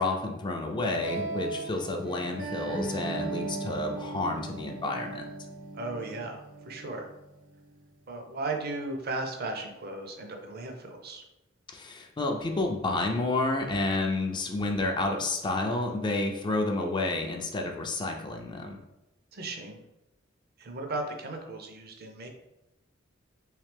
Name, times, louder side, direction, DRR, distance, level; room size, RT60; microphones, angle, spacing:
voice 1, 0.0-5.3 11.7-18.8, left 2 dB, 25° left, 3 dB, 0.4 m, -30 dB
sound 1, 0.8-7.8, right 2 dB, 70° right, 1.0 m, -38 dB
voice 2, 5.8-7.1 8.1-11.2 19.3-19.8 20.6-22.3, right 2 dB, 50° right, 4 dB, 0.6 m, -36 dB
3.2 x 3.1 x 3.3 m, 0.95 s
head